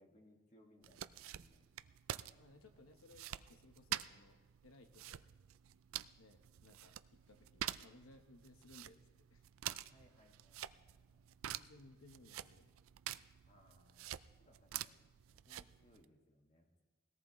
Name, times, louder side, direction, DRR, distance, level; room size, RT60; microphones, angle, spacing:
voice 1, 0.0-1.7 2.5-2.6 9.9-11.2 13.5-16.8, left 1 dB, 35° left, 1 dB, 1.8 m, -68 dB
sound 1, 0.8-16.0, right 12 dB, 80° right, 0.4 m, -48 dB
voice 2, 2.4-5.2 6.2-9.4 11.4-12.7, left 2 dB, 85° left, 6 dB, 1.0 m, -62 dB
20.5 x 17.5 x 3.1 m, 1.3 s
head